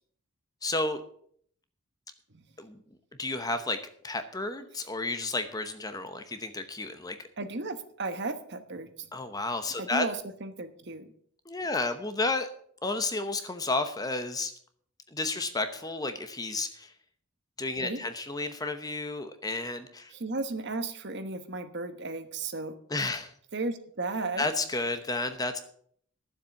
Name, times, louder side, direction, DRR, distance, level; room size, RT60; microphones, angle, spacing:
voice 1, 0.6-1.0 2.6-2.8 3.2-3.8 4.0-7.2 9.1-10.0 11.5-12.5 12.8-14.5 15.1-16.9 17.6-20.1 22.9-23.3 24.4-25.6, left 2 dB, 15° left, 9 dB, 0.9 m, -31 dB
voice 2, 7.4-9.1 9.8-11.1 17.8-18.0 20.1-22.7 23.5-24.4, right 3 dB, 50° right, 9 dB, 1.1 m, -34 dB
12.5 x 7.4 x 7.0 m, 0.62 s
head